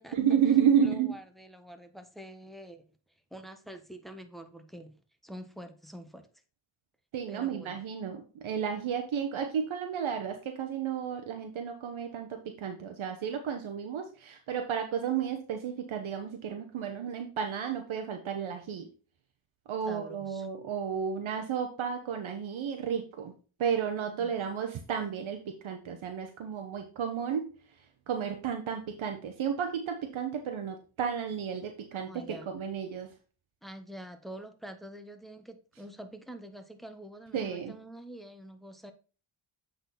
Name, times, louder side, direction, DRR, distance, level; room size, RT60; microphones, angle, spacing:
voice 1, 0.1-1.1 7.1-18.9 19.7-23.3 23.6-27.5 28.1-33.1 37.3-37.7, right 8 dB, 70° right, 1.0 m, -32 dB
voice 2, 0.8-2.8 3.3-5.0 5.2-6.3 7.3-7.8 19.8-20.5 24.2-24.3 31.9-32.5 33.6-38.9, right 1 dB, ahead, 1.2 m, -46 dB
8.0 x 4.1 x 4.1 m
cardioid pair, 55°, 49 cm